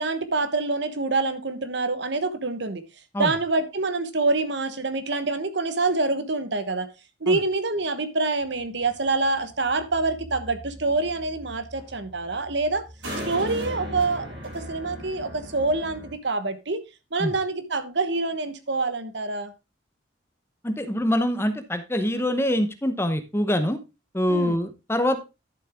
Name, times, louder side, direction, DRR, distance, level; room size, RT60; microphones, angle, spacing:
voice 1, 0.0-2.8 3.2-6.9 7.2-12.8 13.3-14.3 14.5-16.8 17.1-19.5 24.3-24.6, right 3 dB, 65° right, 11 dB, 1.2 m, -26 dB
sound 1, 8.4-16.1, equal, 85° right, 6.6 m, -38 dB
voice 2, 20.6-23.8 24.1-25.2, left 1 dB, 10° left, 10 dB, 0.8 m, -24 dB
11.5 x 7.4 x 3.5 m, 0.26 s
head